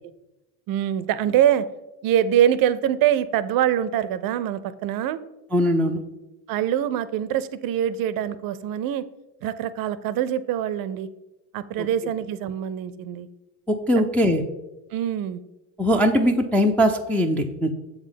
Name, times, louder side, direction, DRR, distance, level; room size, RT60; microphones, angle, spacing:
voice 1, 0.7-1.7 2.0-5.2 6.5-9.0 9.4-11.1 11.5-13.3 14.9-15.4, right 10 dB, 50° right, 15 dB, 0.5 m, -24 dB
voice 2, 5.5-6.0 11.8-11.9 13.7-14.4 15.8-17.7, equal, 5° left, 1 dB, 0.3 m, -20 dB
7.2 x 3.7 x 5.1 m, 0.99 s
supercardioid pair, 90°, 45 cm